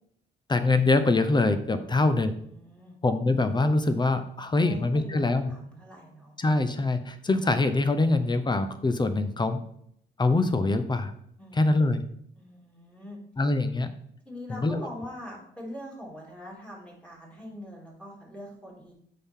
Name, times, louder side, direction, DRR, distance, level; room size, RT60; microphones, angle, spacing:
voice 1, 0.5-2.3 3.0-5.5 6.4-9.6 10.2-11.1 11.6-12.0 13.4-13.9 14.5-14.8, left 2 dB, 20° left, 10 dB, 0.8 m, -24 dB
voice 2, 1.8-3.0 4.6-5.2 5.5-6.3 11.4-11.7 12.3-13.2 14.2-18.9, left 1 dB, 5° left, -4 dB, 3.2 m, -43 dB
7.7 x 5.7 x 3.8 m, 0.69 s
cardioid pair, 90°, 20 cm